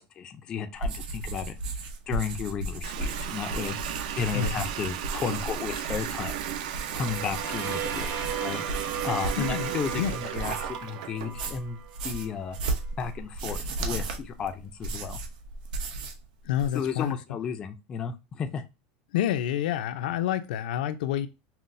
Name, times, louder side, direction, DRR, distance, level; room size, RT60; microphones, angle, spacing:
voice 1, 0.0-1.5 2.1-3.8 4.2-6.3 6.9-8.6 9.0-11.8 12.0-12.6 13.0-15.2 16.7-18.6, left 6 dB, 20° left, 0.3 m, -33 dB
sound 1, 0.8-10.8 11.2-16.2 16.5-17.1, right 2 dB, 90° right, 0.8 m, -35 dB
Water tap faucet, 2.8-11.4, right 11 dB, 65° right, 0.4 m, -35 dB
sound 2, 6.6-12.5, right 7 dB, 45° right, 0.8 m, -37 dB
voice 2, 9.4-10.1 16.4-17.4 19.1-21.3, left 10 dB, 85° left, 0.4 m, -28 dB
5.7 x 2.0 x 2.5 m
supercardioid pair, 180°, 5 cm